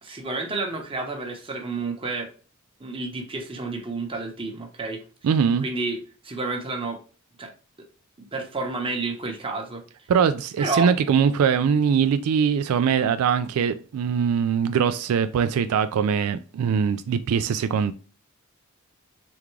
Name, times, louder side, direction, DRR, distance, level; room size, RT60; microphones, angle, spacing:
voice 1, 0.0-2.3 2.8-5.0 5.6-6.0 6.2-7.0 7.4-7.5 8.2-9.8 10.6-10.9, right 3 dB, 25° right, 0.9 m, -30 dB
voice 2, 5.2-5.7 10.1-17.9, right 7 dB, 80° right, 0.3 m, -22 dB
3.6 x 3.5 x 3.1 m
head